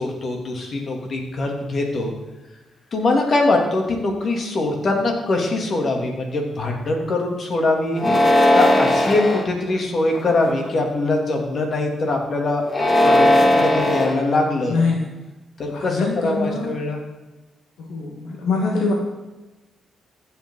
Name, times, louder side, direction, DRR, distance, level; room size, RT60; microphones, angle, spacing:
voice 1, 0.0-2.1 2.9-8.0 8.5-12.6 13.0-13.3 13.5-14.8 15.6-17.0, left 2 dB, 55° left, 1 dB, 2.6 m, -22 dB
sound 1, 8.0-9.4 10.1-10.7 12.6-14.1, left 1 dB, 25° left, 1.9 m, -17 dB
voice 2, 14.7-15.1 15.7-16.7 17.8-18.9, left 4 dB, 90° left, -1 dB, 1.5 m, -23 dB
15.0 x 7.3 x 3.9 m, 1.1 s
cardioid pair, 70°, 0 cm